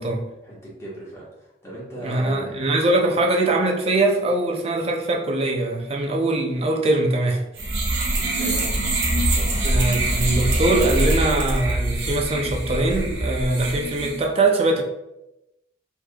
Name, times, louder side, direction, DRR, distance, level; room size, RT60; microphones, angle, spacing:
voice 1, 0.4-2.6 8.2-9.7, right 1 dB, 15° left, 1.3 m, -38 dB
voice 2, 2.0-7.4 9.6-14.8, right 2 dB, 35° right, 0.5 m, -22 dB
sound 1, 7.6-14.2, right 1 dB, 75° right, 0.8 m, -23 dB
3.5 x 3.1 x 2.2 m
head